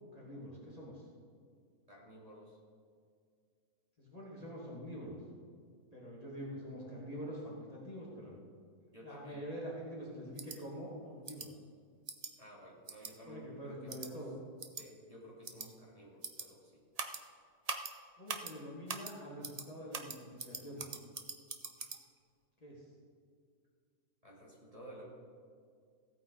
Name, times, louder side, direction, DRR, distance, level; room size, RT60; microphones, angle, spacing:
voice 1, 0.0-1.0 4.0-5.2 5.9-8.4 9.0-11.5 13.3-14.4 18.2-20.8 22.6-22.9, equal, 25° left, -5 dB, 2.2 m, -45 dB
voice 2, 1.9-2.6 8.9-9.4 12.4-14.2 14.8-16.7 24.2-25.1, equal, 20° right, -5 dB, 2.8 m, -53 dB
sound 1, 10.4-10.6 11.3-11.5 12.1-12.3 12.9-13.1 13.9-14.1 14.6-14.8 15.4-15.7 16.2-16.5 17.0-17.2 17.7-17.9 18.3-18.5 18.9-19.1 19.4-19.7 19.9-22.0, right 4 dB, 40° right, 0.6 m, -42 dB
16.0 x 8.9 x 4.1 m, 2.1 s
omnidirectional pair, 1.6 m